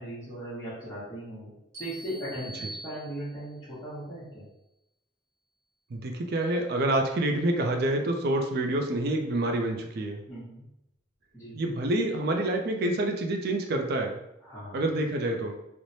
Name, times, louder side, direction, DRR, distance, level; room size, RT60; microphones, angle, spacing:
voice 1, 0.0-1.5 1.8-4.4 10.3-10.6 11.3-11.5 14.4-14.8, right 1 dB, 15° left, -12 dB, 1.0 m, -38 dB
sound 1, 1.7-3.6, right 1 dB, 20° right, 1.1 m, -44 dB
voice 2, 5.9-10.2 11.5-14.2 14.7-15.5, right 1 dB, 55° right, 3 dB, 0.4 m, -27 dB
3.1 x 2.1 x 2.6 m, 0.85 s
head